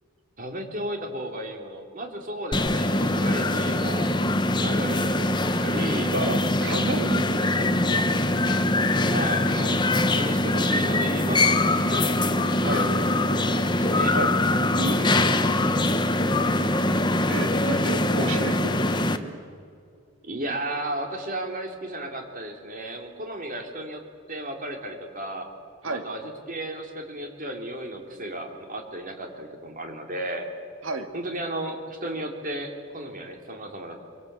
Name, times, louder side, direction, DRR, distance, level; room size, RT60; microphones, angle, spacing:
voice 1, 0.4-4.1 4.6-6.1 9.1-9.8 10.1-13.4 13.8-14.2 20.2-24.0 24.3-25.5 25.8-30.5 31.1-34.0, right 1 dB, 35° right, 3 dB, 3.4 m, -34 dB
sound 1, 2.5-19.2, left 2 dB, 20° left, 1.0 m, -23 dB
voice 2, 6.1-8.0 12.6-12.8 14.1-14.3 14.8-15.4 16.9-18.7 25.8-26.0 30.8-31.1, right 2 dB, 60° right, 5 dB, 2.5 m, -31 dB
25.5 x 24.5 x 8.3 m, 2.3 s
head